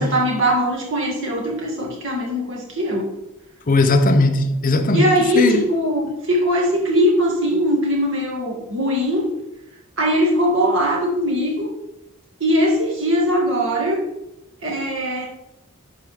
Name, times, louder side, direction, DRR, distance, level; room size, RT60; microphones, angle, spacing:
voice 1, 0.0-3.1 4.9-9.3 10.0-11.7 12.4-14.0 14.6-15.3, equal, 60° right, 1.9 m, -20 dB
voice 2, 3.7-5.6, left 2 dB, 40° left, 0.6 m, -18 dB
11.0 x 4.6 x 3.5 m
head